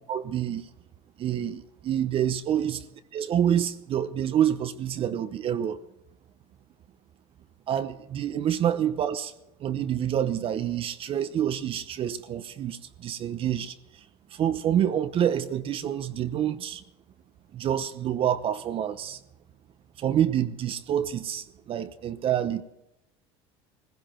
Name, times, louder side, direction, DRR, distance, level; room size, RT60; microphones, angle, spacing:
voice 1, 0.1-0.7 1.2-2.8 3.1-5.8 7.7-9.3 9.6-14.0 14.3-16.8 17.5-19.2 20.0-22.6, right 10 dB, 40° right, 0.9 m, -27 dB
18.5 x 16.0 x 4.4 m
supercardioid pair, 115°, 14 cm